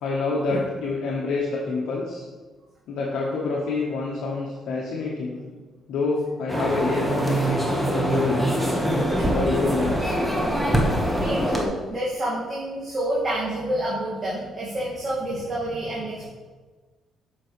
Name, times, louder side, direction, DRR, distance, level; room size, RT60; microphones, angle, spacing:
voice 1, 0.0-2.2 2.9-5.4 5.9-8.8 9.3-10.2, left 3 dB, 80° left, -4 dB, 1.0 m, -27 dB
sound 1, 6.5-11.7, right 1 dB, 10° right, 1.2 m, -23 dB
voice 2, 11.2-16.2, right 1 dB, 35° right, -8 dB, 1.9 m, -28 dB
7.4 x 6.1 x 3.2 m, 1.4 s
cardioid pair, 90°, 0 cm